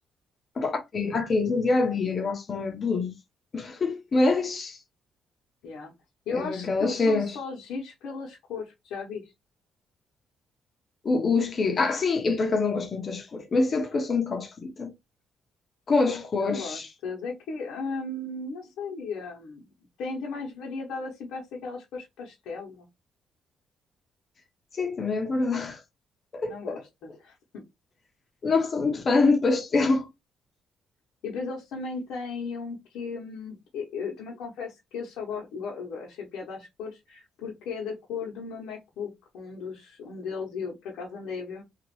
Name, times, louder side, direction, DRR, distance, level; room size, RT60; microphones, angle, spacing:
voice 1, 0.6-3.1 3.5-4.8 6.3-7.4 11.0-14.9 15.9-16.9 24.8-25.8 26.3-26.8 28.4-30.1, left 3 dB, 45° left, 0.8 m, -25 dB
voice 2, 6.3-9.3 16.4-19.6 20.0-22.9 26.5-27.6 31.2-41.6, left 4 dB, 85° left, 0.9 m, -36 dB
2.9 x 2.5 x 3.0 m
cardioid pair, 90°, 0 cm